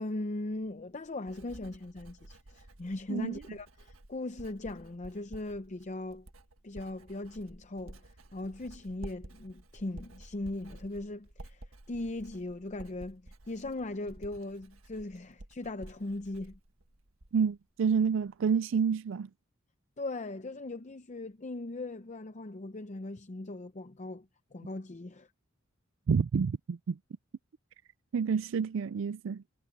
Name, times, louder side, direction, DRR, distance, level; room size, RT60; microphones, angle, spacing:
voice 1, 0.0-6.3 6.6-8.1 8.3-16.6 20.0-25.3, left 2 dB, 35° left, 0.7 m, -39 dB
Writing, 0.5-17.6 17.9-18.3, right 1 dB, 90° right, 1.6 m, -52 dB
voice 2, 3.1-3.6 17.3-19.3 26.1-27.0 28.1-29.4, right 6 dB, 65° right, 0.4 m, -29 dB
head